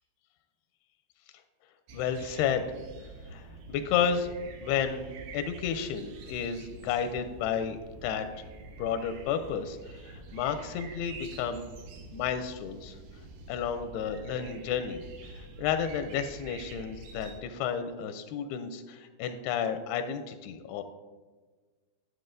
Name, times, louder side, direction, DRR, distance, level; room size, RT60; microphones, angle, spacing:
voice 1, 1.9-2.7 3.3-4.3 4.6-8.3 8.8-11.7 12.1-13.0 13.5-20.8, left 7 dB, 90° left, 8 dB, 2.5 m, -32 dB
sound 1, 1.9-17.4, right 3 dB, 85° right, 2.8 m, -46 dB
12.5 x 7.8 x 2.6 m, 1.3 s
omnidirectional pair, 4.4 m